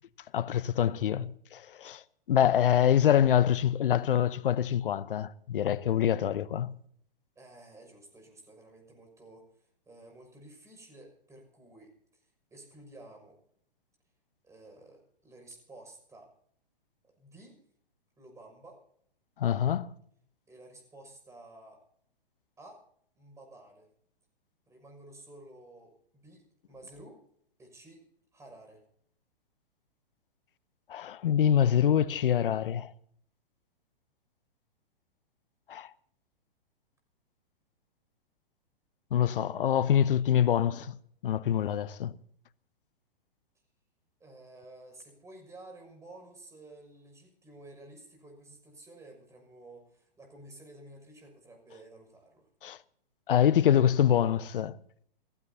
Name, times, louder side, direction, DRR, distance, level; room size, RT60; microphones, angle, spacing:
voice 1, 0.3-2.0 2.3-6.7 19.4-19.9 30.9-32.9 35.7-35.9 39.1-41.0 41.2-42.1 52.6-52.8 53.3-54.8, left 9 dB, 65° left, 1.0 m, -25 dB
voice 2, 7.3-12.2 12.5-13.4 14.4-16.3 17.0-17.6 18.2-18.8 20.5-21.8 22.6-22.8 23.1-23.9 24.7-26.0 26.2-27.2 27.6-28.0 28.3-28.8 44.2-52.5, right 2 dB, 10° right, 6.2 m, -52 dB
28.0 x 16.0 x 2.8 m
hypercardioid pair, 120°, 29 cm